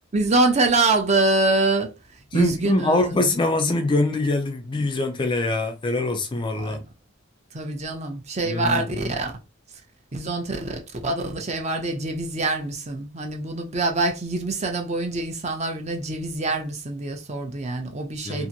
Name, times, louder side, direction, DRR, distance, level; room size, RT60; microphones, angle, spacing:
voice 1, 0.1-1.9 2.3-3.2 6.6-6.8 7.5-9.3 10.1-18.5, right 2 dB, 35° right, 0.6 m, -25 dB
voice 2, 2.3-6.8 8.4-9.1 18.2-18.5, left 2 dB, 25° left, 0.3 m, -24 dB
2.7 x 2.5 x 2.7 m
head